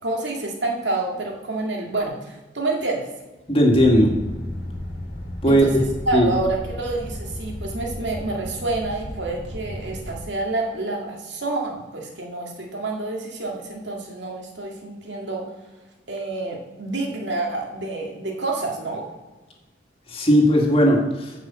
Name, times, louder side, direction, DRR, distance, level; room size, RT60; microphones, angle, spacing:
voice 1, 0.0-3.1 5.5-15.4 16.1-19.0, right 2 dB, 85° right, 0 dB, 2.2 m, -28 dB
voice 2, 3.5-4.1 5.4-5.7 6.1-6.3 20.1-21.3, equal, 30° left, 0 dB, 2.0 m, -17 dB
sound 1, 3.7-10.2, left 1 dB, 90° left, 1.9 m, -34 dB
9.6 x 5.5 x 7.6 m, 1.2 s
head